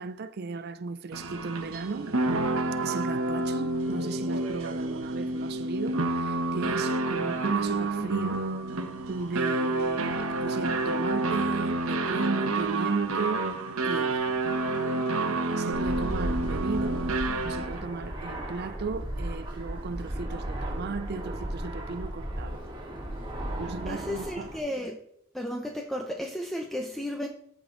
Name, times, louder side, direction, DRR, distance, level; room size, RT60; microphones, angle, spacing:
voice 1, 0.0-2.1 2.8-8.5 9.1-13.5 13.8-14.4 15.1-17.1 17.4-22.6 23.6-24.5, right 4 dB, 50° right, 0.4 m, -35 dB
sound 1, 1.1-17.9, right 2 dB, 75° right, 1.1 m, -29 dB
Fixed-wing aircraft airplane, 15.7-24.6, right 1 dB, 25° right, 2.1 m, -35 dB
voice 2, 23.9-25.0 25.3-27.3, left 1 dB, ahead, 0.7 m, -33 dB
14.0 x 5.2 x 3.8 m
head